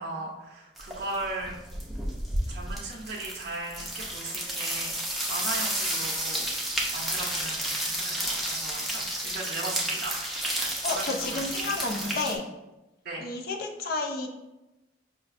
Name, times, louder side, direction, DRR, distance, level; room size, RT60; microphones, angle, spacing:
voice 1, 0.0-1.6 2.5-5.0 5.3-12.2 13.0-13.3, right 2 dB, 55° right, -4 dB, 0.5 m, -37 dB
sound 1, 0.8-1.2 1.4-12.4, right 1 dB, ahead, 0.5 m, -31 dB
voice 2, 10.8-12.4 13.2-14.3, left 3 dB, 55° left, 3 dB, 0.4 m, -31 dB
5.5 x 2.4 x 2.4 m, 1.0 s
head